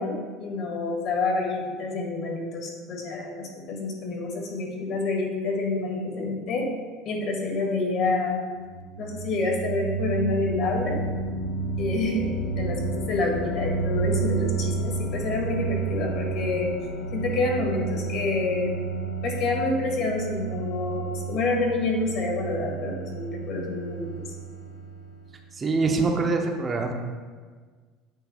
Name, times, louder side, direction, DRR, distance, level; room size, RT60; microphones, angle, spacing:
voice 1, 0.0-6.7 7.0-8.4 9.0-11.0 11.8-16.7 17.1-18.7 19.2-24.3, left 3 dB, 55° left, 1 dB, 1.5 m, -28 dB
sound 1, 8.6-25.3, right 4 dB, 75° left, 0.6 m, -31 dB
voice 2, 25.5-26.9, right 3 dB, 25° right, 3 dB, 0.6 m, -24 dB
8.2 x 3.2 x 4.3 m, 1.5 s
supercardioid pair, 110°, 0 cm